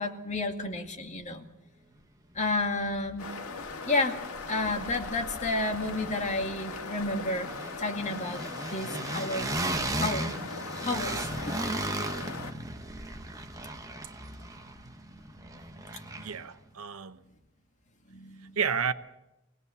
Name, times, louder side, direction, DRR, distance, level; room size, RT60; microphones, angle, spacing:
voice 1, 0.0-1.4 2.3-3.3 3.9-4.2 4.5-7.5 7.8-8.4 8.7-9.5 10.0-10.3 10.8-11.6 12.9-13.0 15.5-15.6 16.0-16.1 18.1-18.6, left 2 dB, 35° left, 2.1 m, -31 dB
sound 1, 2.6-2.7 2.9-4.1 4.3-16.5, right 2 dB, 15° right, 1.3 m, -37 dB
sound 2, 3.2-12.5, left 4 dB, 90° left, 1.9 m, -39 dB
voice 2, 16.2-17.2 18.6-18.9, right 6 dB, 85° right, 1.0 m, -31 dB
24.5 x 18.0 x 6.9 m
head